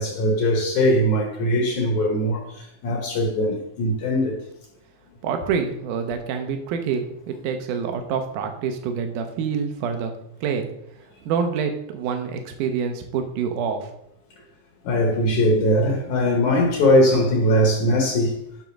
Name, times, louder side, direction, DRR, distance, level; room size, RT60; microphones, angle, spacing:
voice 1, 0.0-4.4 14.8-18.4, equal, 65° left, 2.3 m, -20 dB
voice 2, 5.2-10.1 10.4-10.7 11.2-13.9, right 6 dB, 70° right, 2.3 m, -26 dB
10.5 x 3.8 x 6.0 m
omnidirectional pair, 4.0 m